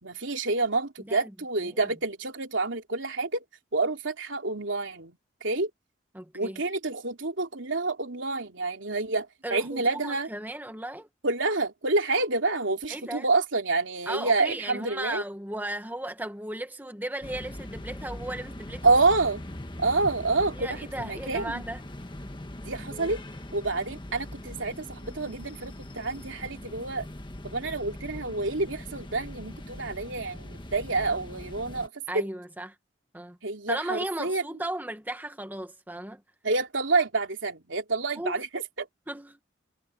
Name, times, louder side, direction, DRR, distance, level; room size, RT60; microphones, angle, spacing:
voice 1, 0.0-3.4 3.7-5.7 6.3-10.3 11.2-15.2 18.8-19.4 19.8-21.6 22.6-23.2 23.5-27.1 27.4-32.2 33.4-34.4 36.4-38.9, right 3 dB, 75° right, 3.1 m, -28 dB
voice 2, 6.1-6.6 9.4-11.1 12.9-13.3 14.1-19.0 20.5-21.8 32.1-32.7 33.1-33.4 33.7-36.2 38.2-38.4 39.1-39.4, right 1 dB, 10° right, 1.6 m, -36 dB
sound 1, 17.2-31.9, left 1 dB, 25° left, 1.4 m, -41 dB
head